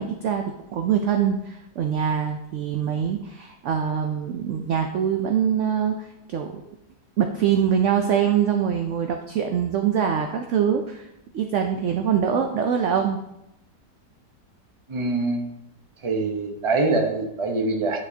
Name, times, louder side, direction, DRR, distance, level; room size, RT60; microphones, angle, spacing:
voice 1, 0.0-6.6 7.2-11.1 11.3-13.2, right 8 dB, 75° right, 5 dB, 0.7 m, -24 dB
voice 2, 14.9-15.5 16.0-18.0, right 3 dB, 30° right, 2 dB, 0.6 m, -24 dB
9.0 x 5.1 x 2.8 m, 0.83 s
omnidirectional pair, 1.8 m